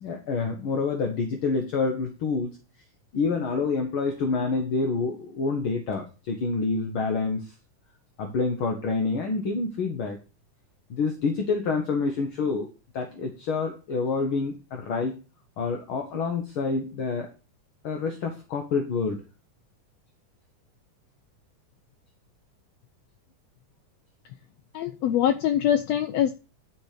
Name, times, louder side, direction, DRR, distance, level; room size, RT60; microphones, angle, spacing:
voice 1, 0.0-2.6 3.1-7.5 8.2-10.2 10.9-12.7 12.9-15.2 15.6-17.3 17.8-19.2, left 4 dB, 60° left, 4 dB, 1.5 m, -27 dB
voice 2, 24.7-26.4, left 10 dB, 85° left, 9 dB, 1.4 m, -23 dB
10.5 x 5.3 x 5.0 m, 0.32 s
omnidirectional pair, 3.6 m